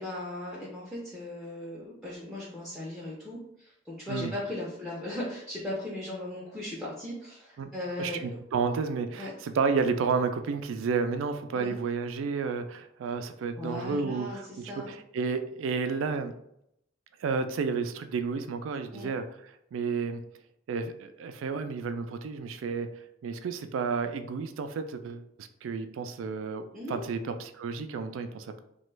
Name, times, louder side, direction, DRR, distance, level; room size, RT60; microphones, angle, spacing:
voice 1, 0.0-8.4 9.2-9.3 11.5-11.8 13.6-14.9 18.9-19.1 26.7-27.0, left 1 dB, ahead, -6 dB, 0.5 m, -38 dB
voice 2, 8.0-16.3 17.2-19.3 19.7-20.2 20.7-22.9 23.2-28.6, right 5 dB, 90° right, 9 dB, 0.3 m, -31 dB
3.0 x 2.2 x 3.2 m, 0.77 s
head